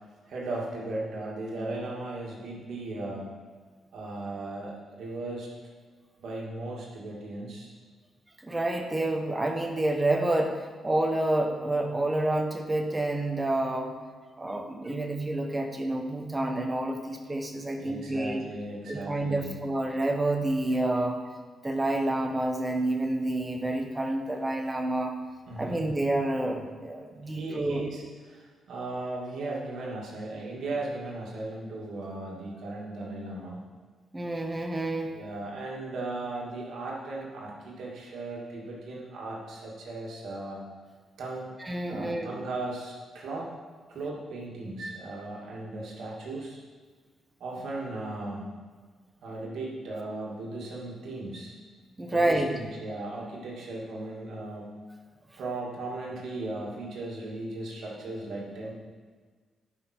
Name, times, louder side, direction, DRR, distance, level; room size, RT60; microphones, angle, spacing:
voice 1, 0.3-3.3 3.9-5.5 6.2-7.7 17.7-19.6 25.5-25.9 27.2-33.6 35.1-40.6 41.2-41.5 41.9-43.6 43.9-46.6 47.4-48.5 49.2-51.5 52.1-54.8 55.3-58.7, right 2 dB, 75° right, -3 dB, 2.2 m, -37 dB
voice 2, 8.4-13.9 14.4-18.4 18.9-21.2 21.6-25.2 25.6-27.8 34.1-35.1 41.6-42.3 52.0-52.5, right 1 dB, 15° right, 4 dB, 1.0 m, -28 dB
11.5 x 5.4 x 4.5 m, 1.5 s
cardioid pair, 110°, 0 cm